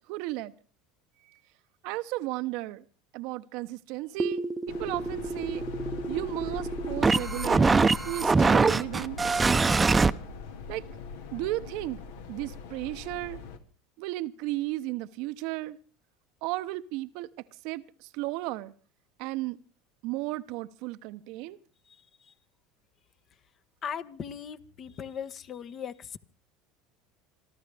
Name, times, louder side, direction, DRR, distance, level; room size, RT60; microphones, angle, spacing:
voice 1, 0.1-0.5 1.8-2.8 3.1-5.6 6.1-9.2 10.7-10.8 11.3-12.0 12.3-13.4 14.0-15.8 16.4-17.3 17.6-17.8 18.1-18.7 19.2-19.6 20.0-21.6, right 18 dB, 65° right, 0.8 m, -34 dB
sound 1, 4.2-10.1, right 4 dB, 20° right, 0.8 m, -24 dB
sound 2, 4.7-13.6, left 5 dB, 80° left, 2.0 m, -41 dB
voice 2, 23.8-26.2, left 7 dB, 45° left, 1.2 m, -38 dB
27.5 x 12.5 x 3.4 m
hypercardioid pair, 85°, 0 cm